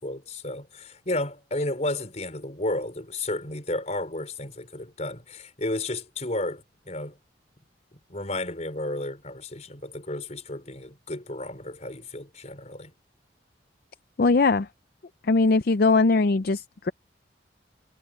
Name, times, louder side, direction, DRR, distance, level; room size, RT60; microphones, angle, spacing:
voice 1, 0.0-7.2 7.9-12.9, left 1 dB, 40° left, 4.9 m, -32 dB
voice 2, 14.2-14.7 15.3-16.9, left 3 dB, 55° left, 0.5 m, -20 dB
head